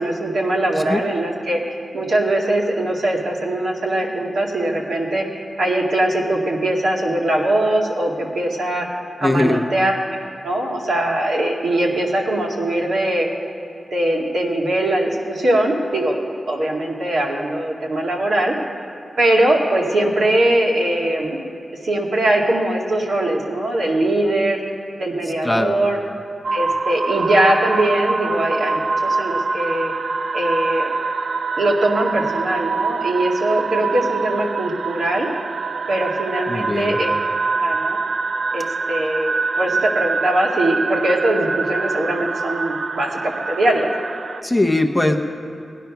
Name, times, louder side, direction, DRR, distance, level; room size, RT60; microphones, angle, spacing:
voice 1, 0.0-8.9 9.2-9.9 10.4-13.3 13.9-16.2 16.5-18.5 19.2-21.4 21.8-24.6 25.0-26.0 26.5-29.9 30.3-30.9 31.6-35.3 35.9-37.1 37.6-38.0 38.5-43.9, right 1 dB, 75° right, -2 dB, 2.0 m, -21 dB
voice 2, 9.2-9.6 25.4-25.7 36.5-37.0 44.4-45.1, left 1 dB, 10° left, 2 dB, 0.7 m, -19 dB
sound 1, 26.4-44.4, right 4 dB, 55° right, 0.3 m, -25 dB
18.5 x 10.5 x 5.8 m, 2.6 s
wide cardioid pair, 170°, 0 cm